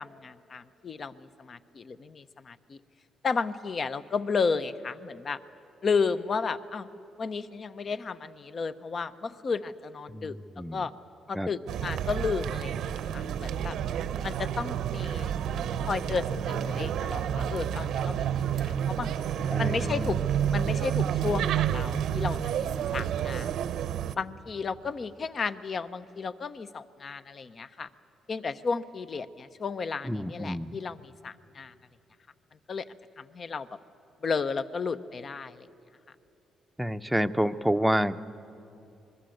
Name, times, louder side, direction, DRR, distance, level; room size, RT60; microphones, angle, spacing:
voice 1, 0.0-2.8 3.2-5.4 5.8-6.9 7.2-10.4 10.7-10.9 11.3-13.8 14.2-15.3 15.9-18.3 18.5-19.2 19.6-20.2 20.5-23.6 24.1-27.9 28.3-31.7 32.7-32.8 33.2-33.7 34.2-35.7, left 5 dB, 45° left, 12 dB, 0.9 m, -33 dB
voice 2, 10.1-10.8 11.3-11.5 19.5-20.2 30.0-30.8 36.8-38.2, equal, 5° right, 9 dB, 0.7 m, -29 dB
sound 1, 11.7-24.1, right 9 dB, 80° right, 0.8 m, -30 dB
25.0 x 21.5 x 7.9 m, 2.8 s
cardioid pair, 90°, 0 cm